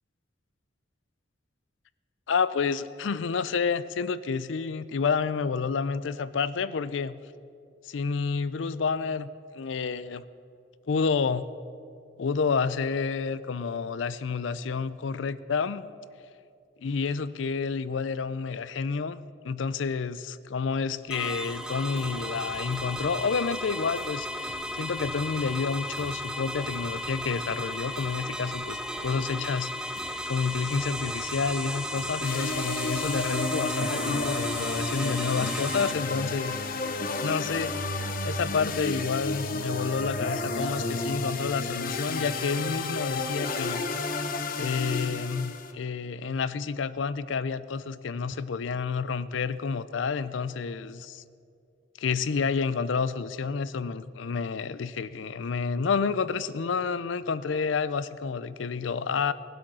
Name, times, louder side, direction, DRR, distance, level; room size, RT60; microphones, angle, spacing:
voice 1, 2.3-7.2 7.8-9.3 9.5-10.2 10.9-11.4 12.2-15.9 16.8-29.7 30.3-36.6 37.2-37.7 38.2-43.8 44.6-51.2 52.0-59.3, left 5 dB, 75° left, 16 dB, 0.5 m, -29 dB
sound 1, 21.1-35.9, equal, 5° right, 0.6 m, -35 dB
sound 2, 21.1-35.1, right 1 dB, 90° right, 1.7 m, -51 dB
sound 3, 32.2-45.7, left 3 dB, 45° left, 0.8 m, -31 dB
18.5 x 7.8 x 6.2 m, 2.4 s
head